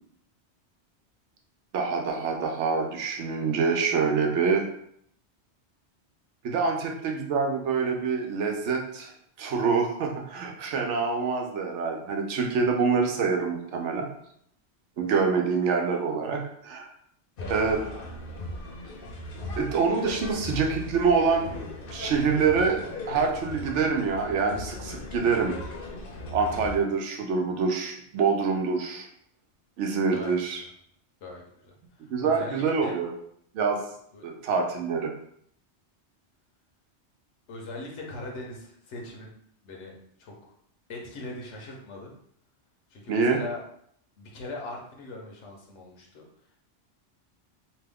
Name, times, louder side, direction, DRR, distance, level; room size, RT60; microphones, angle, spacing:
voice 1, 1.7-4.7 6.4-9.1 9.4-14.1 15.0-16.8 17.5-17.8 19.6-21.6 21.9-22.8 23.1-25.6 26.3-29.1 29.8-30.6 32.1-33.1 33.5-33.8 34.2-35.1 43.1-43.4, right 5 dB, 90° right, 2 dB, 0.9 m, -26 dB
sound 1, 17.4-26.8, left 2 dB, 60° left, 0.8 m, -38 dB
voice 2, 31.2-33.0 34.1-34.3 37.5-39.3 39.6-40.3 40.9-42.1 42.9-43.6 44.2-46.3, left 2 dB, 85° left, -1 dB, 1.1 m, -40 dB
2.9 x 2.2 x 3.4 m, 0.68 s
omnidirectional pair, 1.2 m